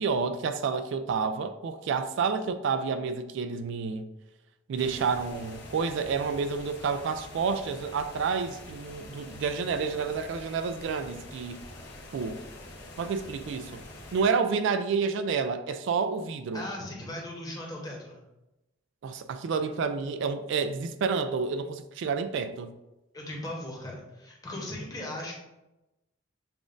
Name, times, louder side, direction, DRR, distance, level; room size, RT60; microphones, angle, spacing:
voice 1, 0.0-4.1 4.7-11.6 12.1-12.4 13.0-13.8 14.1-16.6 19.0-22.7, right 5 dB, 65° right, 0.3 m, -29 dB
sound 1, 4.8-14.2, left 2 dB, 60° left, 1.0 m, -46 dB
voice 2, 16.5-18.2 23.1-25.3, left 1 dB, 20° left, 1.0 m, -38 dB
6.9 x 2.4 x 2.5 m
head